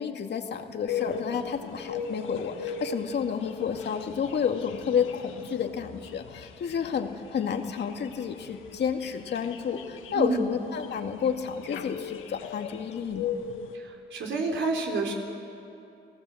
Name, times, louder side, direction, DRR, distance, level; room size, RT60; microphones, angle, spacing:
voice 1, 0.0-13.3, left 7 dB, 60° left, 4 dB, 2.1 m, -30 dB
sound 1, 0.9-13.7, left 6 dB, 85° left, 1.7 m, -39 dB
voice 2, 10.1-10.5 13.7-15.1, right 3 dB, 75° right, 1 dB, 4.5 m, -29 dB
30.0 x 18.5 x 7.9 m, 2.6 s
cardioid pair, 90°, 20 cm